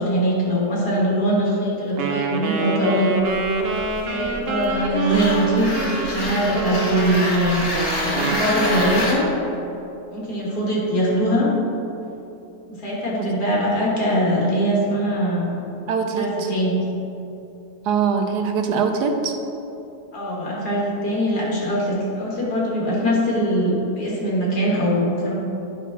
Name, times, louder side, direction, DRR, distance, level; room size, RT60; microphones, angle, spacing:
voice 1, 0.0-3.1 4.1-7.6 8.0-9.3 10.1-11.5 12.7-15.5 16.2-16.8 20.1-25.3, equal, 75° left, -5 dB, 2.3 m, -22 dB
Wind instrument woodwind instrument, 2.0-9.1, right 4 dB, 60° right, 0.6 m, -26 dB
sound 1, 3.2-9.1, left 1 dB, 45° left, 1.3 m, -28 dB
voice 2, 13.1-13.6 15.9-16.5 17.8-19.4, right 6 dB, 90° right, 4 dB, 1.3 m, -23 dB
9.3 x 3.5 x 5.8 m, 2.9 s
omnidirectional pair, 1.7 m